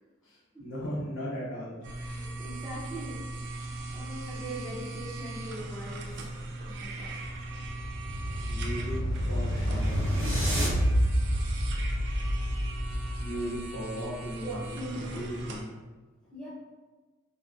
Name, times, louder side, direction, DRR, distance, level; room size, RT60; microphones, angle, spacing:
voice 1, 0.3-1.8 8.5-9.0 9.3-10.1 13.2-15.8, equal, 65° left, -5 dB, 0.7 m, -37 dB
sound 1, 1.8-15.6, right 2 dB, 55° right, 0.3 m, -39 dB
voice 2, 2.0-7.2 14.4-15.2 16.3-16.5, right 1 dB, 5° left, -8 dB, 0.5 m, -42 dB
sound 2, 7.2-13.3, equal, 80° right, 0.9 m, -28 dB
2.5 x 2.1 x 2.4 m, 1.3 s
head